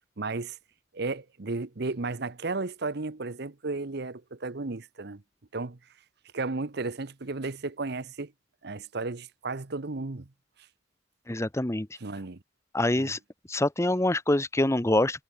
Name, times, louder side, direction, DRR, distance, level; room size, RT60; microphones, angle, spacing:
voice 1, 0.2-0.6 0.9-5.2 5.5-5.8 6.3-8.3 8.6-10.3 12.0-12.4 12.9-13.1, right 3 dB, 60° right, 1.0 m, -34 dB
voice 2, 11.3-11.9 12.7-13.2 13.5-15.2, left 1 dB, 15° left, 0.8 m, -25 dB
head